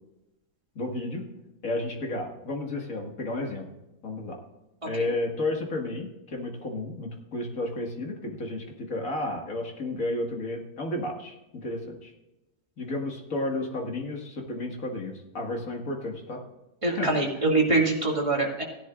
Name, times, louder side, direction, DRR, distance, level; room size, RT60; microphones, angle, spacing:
voice 1, 0.8-1.3 1.6-3.7 4.0-4.4 4.9-12.1 12.8-16.4 16.8-17.1, left 2 dB, 65° left, 1 dB, 2.3 m, -32 dB
voice 2, 16.8-18.6, right 2 dB, 20° right, -2 dB, 2.4 m, -24 dB
16.5 x 11.0 x 2.5 m, 0.97 s
omnidirectional pair, 1.5 m